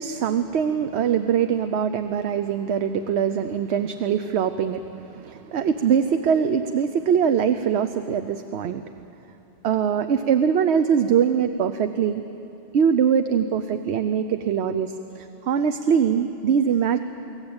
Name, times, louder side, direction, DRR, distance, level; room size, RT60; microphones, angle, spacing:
voice 1, 0.0-8.8 9.6-12.2 12.7-17.0, right 7 dB, 75° right, 9 dB, 1.0 m, -22 dB
23.5 x 17.5 x 8.8 m, 2.9 s
omnidirectional pair, 1.1 m